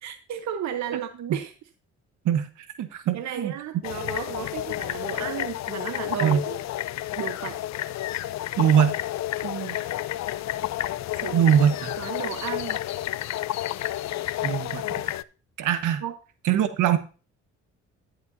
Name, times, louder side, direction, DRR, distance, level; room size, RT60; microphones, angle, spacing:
voice 1, 0.0-1.5 3.1-6.6 7.2-7.6 9.4-9.8 11.1-11.5 12.0-12.8 16.0-16.2, right 9 dB, 65° right, 1.0 m, -33 dB
voice 2, 2.8-3.5 6.2-6.4 8.6-8.9 11.3-11.9 14.4-14.8 15.6-16.0 16.4-17.0, right 9 dB, 80° right, 1.3 m, -21 dB
sound 1, 3.8-15.2, left 14 dB, 65° left, 0.5 m, -30 dB
11.5 x 10.0 x 2.7 m
cardioid pair, 90°, 30 cm